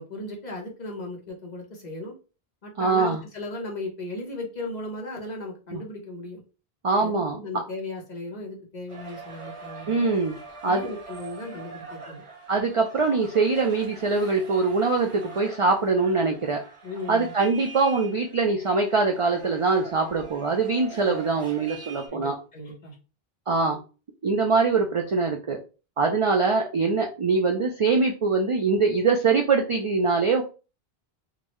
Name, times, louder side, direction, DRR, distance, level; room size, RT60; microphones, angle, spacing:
voice 1, 0.0-2.2 2.6-6.4 7.0-10.1 10.6-12.2 16.8-17.3 20.9-21.2 22.1-23.0, left 2 dB, 45° left, -1 dB, 1.0 m, -36 dB
voice 2, 2.8-3.2 5.7-5.8 6.8-7.4 9.9-10.4 10.6-10.9 12.5-16.6 17.1-22.3 23.5-23.8 24.2-25.6 26.0-30.4, right 4 dB, 55° right, 2 dB, 0.3 m, -23 dB
sound 1, 8.9-22.1, right 5 dB, 35° right, 0.9 m, -43 dB
3.6 x 2.1 x 3.0 m, 0.33 s
omnidirectional pair, 1.0 m